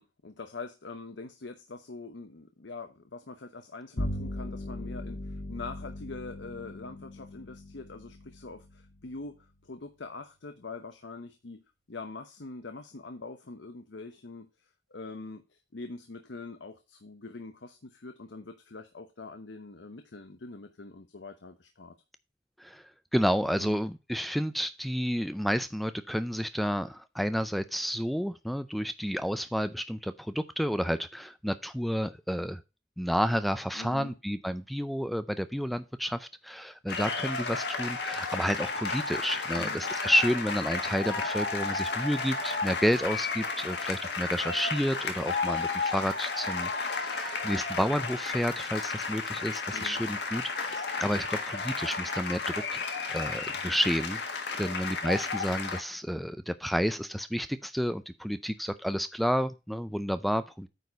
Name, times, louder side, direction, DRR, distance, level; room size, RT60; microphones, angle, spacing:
voice 1, 0.0-11.6 11.9-21.9 23.6-23.8 33.7-34.2 39.5-39.8 49.7-50.0 54.6-54.8, left 3 dB, 85° left, 0.9 m, -44 dB
Bowed string instrument, 4.0-9.6, left 1 dB, 45° left, 1.2 m, -39 dB
voice 2, 22.6-32.6 33.0-52.8 53.1-60.7, equal, ahead, 0.4 m, -30 dB
sound 1, 36.9-55.8, left 4 dB, 65° left, 1.6 m, -33 dB
9.2 x 4.3 x 5.2 m
head